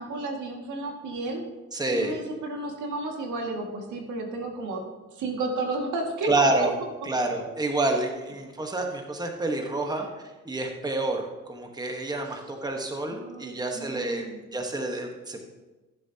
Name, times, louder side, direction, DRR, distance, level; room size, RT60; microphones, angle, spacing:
voice 1, 0.0-1.4 1.9-4.8 5.1-6.3 9.8-10.0 13.1-14.4, right 2 dB, 75° right, 1 dB, 2.1 m, -33 dB
voice 2, 1.7-2.2 6.2-6.7 7.0-10.1 10.4-14.3 14.5-15.4, right 2 dB, 15° right, 3 dB, 1.3 m, -28 dB
14.5 x 7.5 x 2.9 m, 1.2 s
cardioid pair, 90°, 30 cm